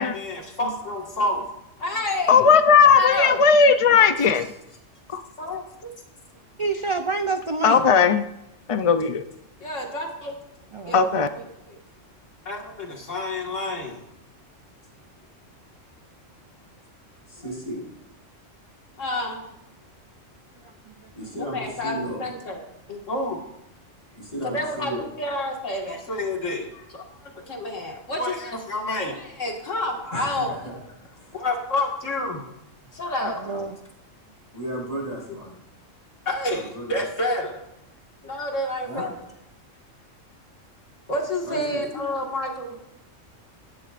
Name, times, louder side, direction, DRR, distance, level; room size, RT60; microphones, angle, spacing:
voice 1, 0.1-1.5 1.8-2.5 2.9-3.4 3.9-4.3 5.4-5.9 9.6-10.4 10.9-11.8 12.5-14.0 19.0-19.4 21.4-23.4 24.4-26.7 26.9-30.8 31.3-32.4 32.9-33.6 36.3-37.6 38.2-39.1 41.1-42.8, left 1 dB, 70° left, 0 dB, 2.2 m, -29 dB
voice 2, 2.3-4.5 5.1-5.2 7.6-8.2 8.7-9.2 10.9-11.3, left 6 dB, 50° left, 9 dB, 0.4 m, -17 dB
voice 3, 6.6-7.9 10.7-11.0 21.0-21.1 33.2-33.8, right 4 dB, 45° right, 7 dB, 0.4 m, -27 dB
voice 4, 17.3-17.9 21.1-22.2 24.2-25.0 26.7-26.8 30.1-30.7 31.1-31.3 33.4-33.6 34.5-35.6 36.5-36.9 38.9-39.1 41.4-41.9, equal, 30° left, -3 dB, 5.2 m, -34 dB
18.5 x 11.5 x 2.5 m, 0.84 s
omnidirectional pair, 1.3 m